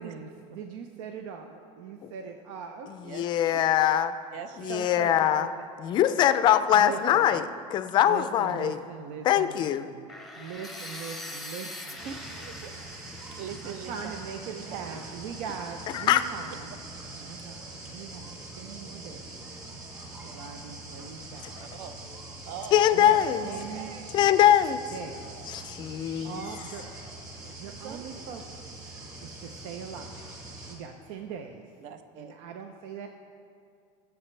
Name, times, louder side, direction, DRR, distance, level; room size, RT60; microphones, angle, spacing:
voice 1, 0.0-2.9 4.7-5.5 6.7-7.4 8.0-10.1 10.4-12.0 13.6-16.7 17.1-19.4 20.2-21.9 22.9-23.9 24.9-25.3 26.2-26.8 27.6-28.7 29.2-30.2 30.7-31.6 32.2-33.1, right 6 dB, 90° right, 5 dB, 0.7 m, -41 dB
voice 2, 3.0-4.1 4.6-5.5 5.8-8.8 9.2-9.9 15.9-16.2 22.7-23.5 24.1-24.8 25.5-26.3, left 11 dB, 30° left, 11 dB, 0.4 m, -22 dB
voice 3, 4.3-5.0 7.0-7.2 12.0-12.7 13.4-14.1 14.5-15.0 21.5-22.0 22.4-24.3 25.0-25.7 27.4-28.3 31.8-32.3, right 7 dB, 55° right, 10 dB, 0.7 m, -43 dB
sound 1, 10.1-16.0, left 1 dB, ahead, 0.7 m, -44 dB
sound 2, 12.0-30.7, right 2 dB, 25° right, 2.1 m, -43 dB
21.5 x 7.2 x 3.3 m, 2.3 s
cardioid pair, 170°, 14 cm